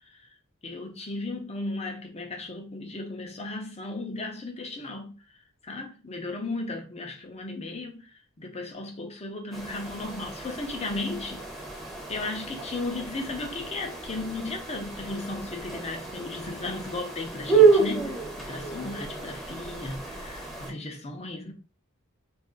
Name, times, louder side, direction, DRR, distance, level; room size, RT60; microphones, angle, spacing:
voice 1, 0.6-5.2 5.6-8.0 8.4-11.4 12.1-21.5, left 2 dB, 30° left, 0.7 m, -35 dB
sound 1, 9.5-20.7, right 4 dB, ahead, 0.8 m, -29 dB
2.6 x 2.5 x 3.8 m
head